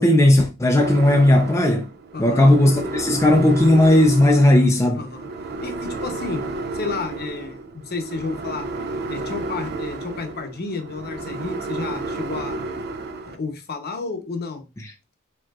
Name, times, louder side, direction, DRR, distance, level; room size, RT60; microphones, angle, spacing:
voice 1, 0.0-1.9 2.2-5.0 14.8-14.9, left 1 dB, 15° left, 0.5 m, -16 dB
sound 1, 0.8-13.3, right 2 dB, 50° right, 0.4 m, -32 dB
voice 2, 2.1-2.6 4.9-5.3 5.6-6.4 6.7-8.7 9.1-12.6 13.3-14.6, left 4 dB, 50° left, 0.9 m, -31 dB
4.6 x 3.8 x 2.4 m
head